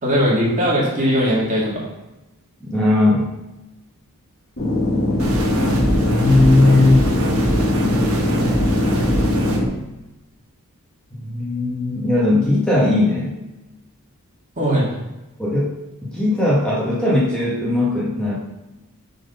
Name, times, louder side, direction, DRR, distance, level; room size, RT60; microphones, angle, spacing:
voice 1, 0.0-1.8 14.6-14.9, equal, 35° right, -5 dB, 2.3 m, -19 dB
voice 2, 2.7-3.3 6.0-7.0 11.2-13.3 15.4-15.7 16.0-18.4, left 2 dB, 5° left, -7 dB, 1.7 m, -18 dB
sound 1, 4.6-9.6, left 1 dB, 45° left, 1.8 m, -20 dB
sound 2, 5.2-9.6, right 1 dB, 70° right, 1.3 m, -24 dB
7.8 x 4.4 x 5.6 m, 1.0 s
head